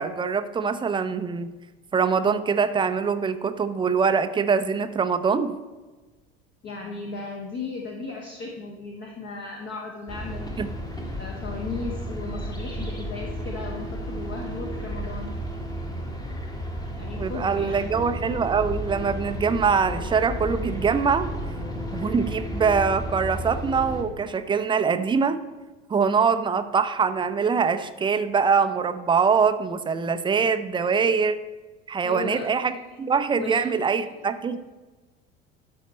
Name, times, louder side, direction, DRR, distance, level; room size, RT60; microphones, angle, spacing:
voice 1, 0.0-1.5 1.9-5.6 10.6-10.7 17.2-21.3 21.9-25.4 25.9-31.4 31.9-34.6, right 5 dB, 15° right, 10 dB, 0.6 m, -23 dB
voice 2, 6.6-10.6 11.1-15.3 17.0-17.8 32.0-32.4 33.3-34.1, left 3 dB, 35° left, 0 dB, 1.4 m, -36 dB
sound 1, 10.1-24.0, equal, 10° left, 1.3 m, -33 dB
12.5 x 4.3 x 4.2 m, 1.2 s
figure-of-eight pair, 70°, 31 cm